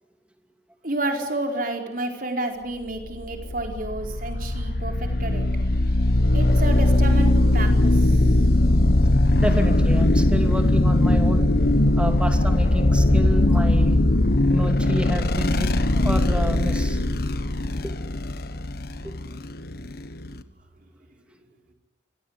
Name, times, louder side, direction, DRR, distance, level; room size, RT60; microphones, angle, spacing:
voice 1, 0.8-5.5 6.3-8.2, right 2 dB, 50° right, 4 dB, 4.5 m, -30 dB
sound 1, 3.0-20.4, left 1 dB, 55° left, 1.3 m, -20 dB
voice 2, 9.4-11.5 12.0-13.9 14.5-17.0 17.8-17.9 19.0-19.2, equal, 5° right, 5 dB, 2.8 m, -29 dB
27.0 x 18.0 x 9.8 m, 0.94 s
head